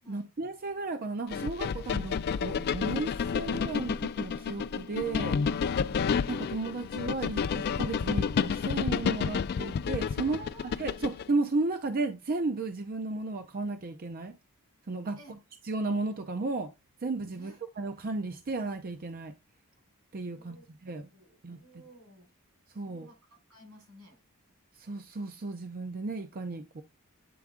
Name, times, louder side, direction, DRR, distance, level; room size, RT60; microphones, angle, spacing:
voice 1, 0.1-5.4 6.3-10.4 10.8-14.3 14.9-15.2 15.7-16.7 17.0-19.3 20.1-20.6 20.8-21.1 21.4-21.6 22.8-23.1 24.8-26.8, right 3 dB, 40° right, 0.5 m, -34 dB
sound 1, 1.3-11.3, left 6 dB, 45° left, 0.3 m, -30 dB
voice 2, 10.2-10.7 15.2-15.4 17.3-17.6 20.3-20.7 21.1-22.3 22.8-24.2, right 1 dB, 90° right, 4.6 m, -53 dB
8.5 x 3.5 x 3.6 m
head